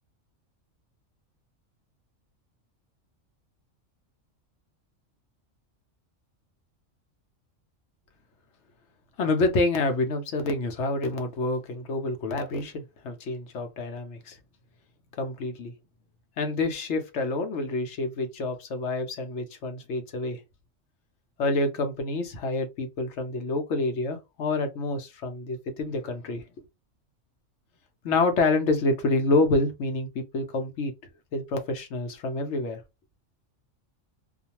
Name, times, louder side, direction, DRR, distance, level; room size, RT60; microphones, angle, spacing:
voice 1, 9.2-14.4 15.2-15.7 16.4-20.4 21.4-26.4 28.0-30.9 31.3-32.8, left 2 dB, 65° left, 0.9 m, -27 dB
2.4 x 2.2 x 2.8 m
omnidirectional pair, 1.3 m